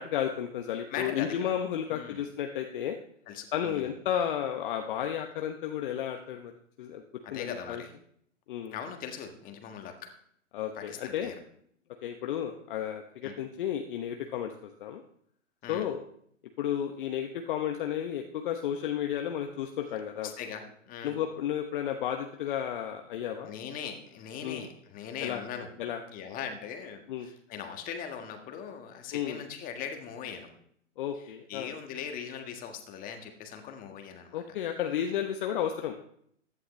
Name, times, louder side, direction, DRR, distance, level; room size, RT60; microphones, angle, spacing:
voice 1, 0.0-3.0 3.5-6.5 6.8-7.0 7.3-7.8 8.5-8.8 10.5-11.3 12.0-15.0 15.7-16.0 16.6-20.3 21.0-23.5 24.4-24.6 25.2-25.4 25.8-26.0 27.1-27.3 29.1-29.4 31.0-31.7 34.3-36.0, left 9 dB, 40° left, 4 dB, 1.0 m, -32 dB
voice 2, 0.9-1.4 1.9-2.2 3.3-3.9 7.2-7.9 8.7-10.0 10.7-11.3 13.2-13.3 15.6-15.8 20.2-21.1 23.4-25.8 26.1-30.5 31.2-34.4, left 7 dB, 20° left, 5 dB, 1.6 m, -40 dB
15.5 x 11.0 x 3.2 m, 0.66 s
figure-of-eight pair, 125°, 38 cm